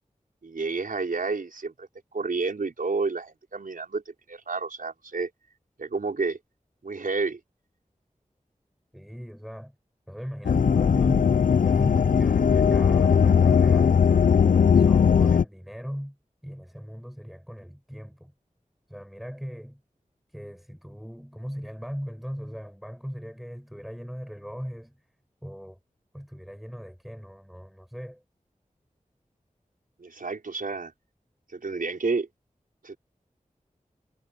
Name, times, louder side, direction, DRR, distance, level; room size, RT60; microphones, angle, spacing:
voice 1, 0.4-5.3 5.8-6.4 6.8-7.4 30.0-30.9 31.5-32.3 32.8-33.0, right 4 dB, 90° right, 5.4 m, -30 dB
voice 2, 8.9-9.8 10.1-14.1 14.7-16.2 16.4-18.3 18.9-19.8 20.3-25.1 25.4-25.8 26.1-28.2, equal, ahead, 7.5 m, -38 dB
sound 1, 10.4-15.4, left 7 dB, 75° left, 0.4 m, -19 dB
wide cardioid pair, 60°, 14 cm